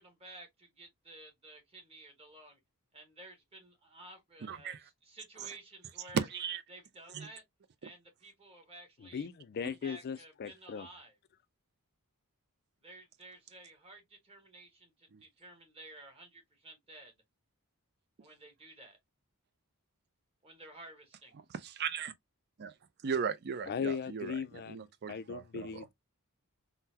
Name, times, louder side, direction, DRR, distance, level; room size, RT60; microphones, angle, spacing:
voice 1, 0.0-2.6 2.9-6.3 6.7-7.4 7.8-9.3 9.6-11.2 12.8-17.1 18.2-19.0 20.4-21.4, right 2 dB, 25° right, 1.1 m, -53 dB
voice 2, 4.5-4.8 6.1-6.6 7.1-7.3 15.1-15.2 21.6-22.1 22.6-22.7 23.0-24.4 24.7-25.9, right 6 dB, 45° right, 0.4 m, -36 dB
voice 3, 9.1-10.9 23.7-24.8 25.1-25.9, left 6 dB, 45° left, 0.3 m, -38 dB
3.7 x 2.1 x 2.7 m
head